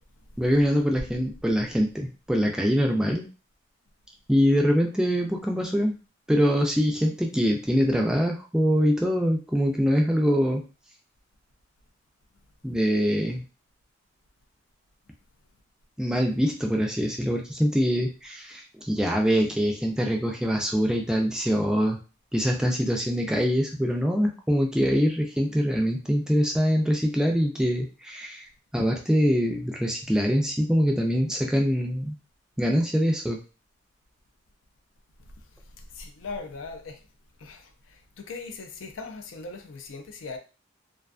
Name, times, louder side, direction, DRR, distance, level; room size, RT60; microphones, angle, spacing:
voice 1, 0.4-3.2 4.3-5.9 6.3-10.6 12.6-13.4 16.0-22.0 22.3-28.5 28.7-32.1 32.6-33.4, equal, 5° right, 0.3 m, -24 dB
voice 2, 35.8-37.0 37.4-40.4, left 4 dB, 80° left, 0.4 m, -39 dB
2.5 x 2.3 x 2.3 m
head